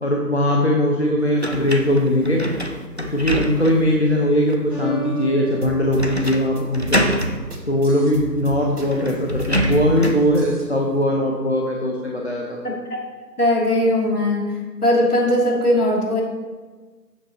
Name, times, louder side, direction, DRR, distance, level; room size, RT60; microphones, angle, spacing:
voice 1, 0.0-2.4 3.1-7.1 7.7-12.6, equal, 40° left, -1 dB, 1.0 m, -20 dB
sound 1, 1.4-4.0 4.5-4.6 6.0-6.5 6.7-7.4 8.4-8.5 8.8-10.3, equal, 40° right, 0.5 m, -25 dB
sound 2, 4.7-7.6, left 3 dB, 15° left, 3.0 m, -34 dB
sound 3, 5.6-10.7, equal, 70° right, 2.4 m, -33 dB
voice 2, 13.4-14.5 14.8-16.2, left 1 dB, 65° left, -2 dB, 2.9 m, -19 dB
12.5 x 8.3 x 2.9 m, 1.4 s
figure-of-eight pair, 165°, 49 cm